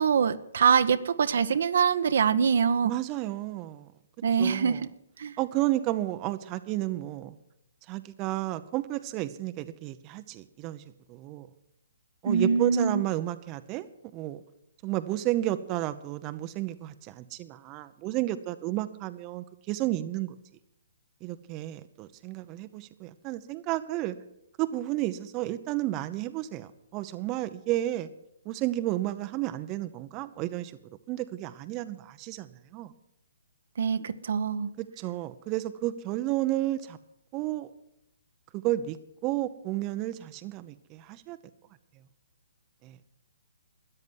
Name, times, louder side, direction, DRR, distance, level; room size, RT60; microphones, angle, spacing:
voice 1, 0.0-2.9 4.2-4.8 5.2-5.4 12.2-13.0 33.8-34.7, right 6 dB, 60° right, 10 dB, 0.9 m, -24 dB
voice 2, 2.8-3.9 4.4-4.9 5.4-7.3 7.9-11.5 12.2-13.9 14.1-14.4 14.8-20.3 21.2-24.2 24.6-28.1 28.4-32.9 34.8-37.0 37.3-37.7 38.5-39.0 39.2-41.4 42.8-43.0, right 15 dB, 30° right, 10 dB, 0.8 m, -32 dB
13.5 x 9.5 x 9.4 m, 0.80 s
figure-of-eight pair, 135°, 0 cm